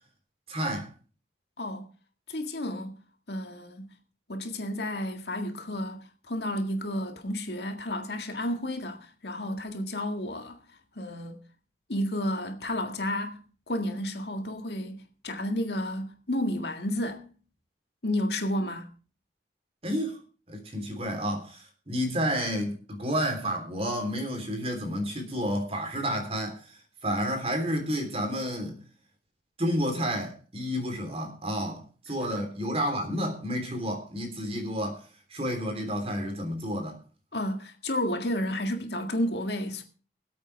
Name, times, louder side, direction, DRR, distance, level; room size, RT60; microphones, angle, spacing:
voice 1, 0.5-0.9 19.8-20.2 20.5-28.8 29.6-35.0 35.3-37.0, equal, 35° right, 3.4 m, -30 dB
voice 2, 1.6-1.9 2.3-3.0 3.3-3.9 4.3-10.6 11.0-11.4 11.9-13.4 13.7-17.3 18.0-18.9 32.4-32.5 37.3-39.8, left 1 dB, 65° left, 1.9 m, -31 dB
24.0 x 8.4 x 3.4 m
head